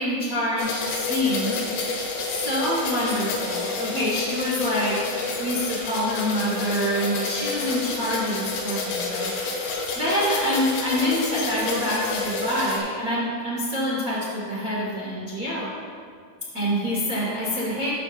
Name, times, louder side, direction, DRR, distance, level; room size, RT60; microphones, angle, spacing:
voice 1, 0.0-1.7 2.2-9.7 9.9-15.7 16.5-17.9, equal, 60° right, -7 dB, 0.8 m, -26 dB
sound 1, 0.6-12.8, left 3 dB, 80° left, 3.4 m, -29 dB
16.5 x 7.3 x 2.6 m, 2.1 s
omnidirectional pair, 4.8 m